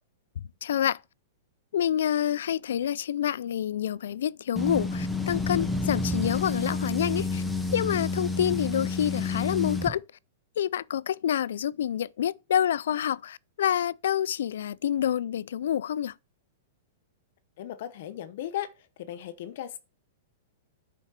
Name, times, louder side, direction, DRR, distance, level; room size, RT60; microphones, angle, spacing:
voice 1, 0.4-1.0 1.7-7.4 7.7-10.0 10.6-16.1, left 10 dB, 75° left, 0.3 m, -28 dB
sound 1, 4.6-9.9, left 3 dB, ahead, 0.7 m, -29 dB
voice 2, 17.6-18.7 19.0-19.8, left 12 dB, 55° left, 0.9 m, -36 dB
10.5 x 4.4 x 4.4 m
supercardioid pair, 165°, 0 cm